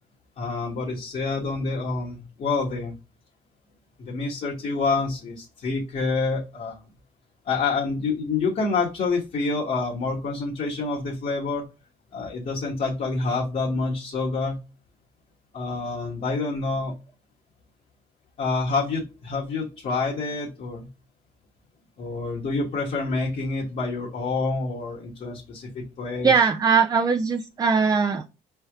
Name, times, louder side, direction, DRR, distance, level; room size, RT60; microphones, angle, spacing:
voice 1, 0.4-2.9 4.0-6.8 7.5-11.6 12.1-14.6 15.5-16.9 18.4-20.9 22.0-26.3, left 3 dB, 50° left, -3 dB, 1.3 m, -27 dB
voice 2, 26.2-28.2, right 5 dB, 20° right, 6 dB, 0.4 m, -20 dB
4.2 x 3.4 x 3.5 m, 0.29 s
cardioid pair, 110°, 17 cm